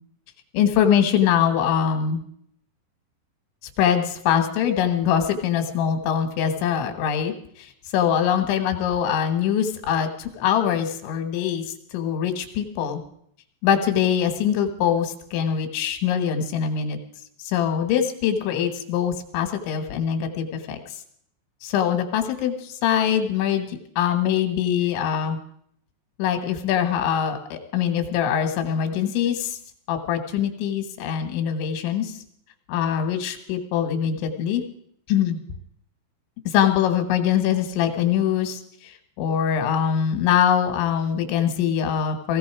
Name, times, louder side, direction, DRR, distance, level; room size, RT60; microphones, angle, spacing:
voice 1, 0.5-2.2 3.8-13.0 13.6-17.0 17.4-20.8 21.6-25.4 26.2-29.6 29.9-32.2 32.7-34.6 35.1-35.4 36.5-42.4, left 8 dB, 85° left, 7 dB, 3.8 m, -23 dB
17.0 x 16.0 x 4.8 m, 0.68 s
omnidirectional pair, 5.2 m